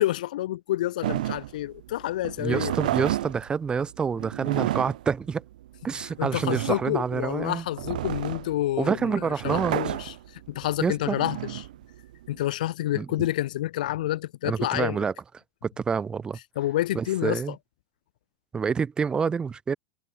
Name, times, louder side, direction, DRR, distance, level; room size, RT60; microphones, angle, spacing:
voice 1, 0.0-2.8 6.2-11.7 12.3-15.0 16.6-17.4, left 14 dB, 75° left, 3.0 m, -28 dB
sound 1, 1.0-12.4, right 14 dB, 80° right, 2.6 m, -32 dB
voice 2, 2.4-5.4 5.8-7.6 8.8-9.9 10.8-11.2 12.9-13.1 14.4-15.1 15.6-16.4 16.9-17.5 18.5-19.8, right 6 dB, 20° right, 3.3 m, -27 dB
hypercardioid pair, 115°, 4 cm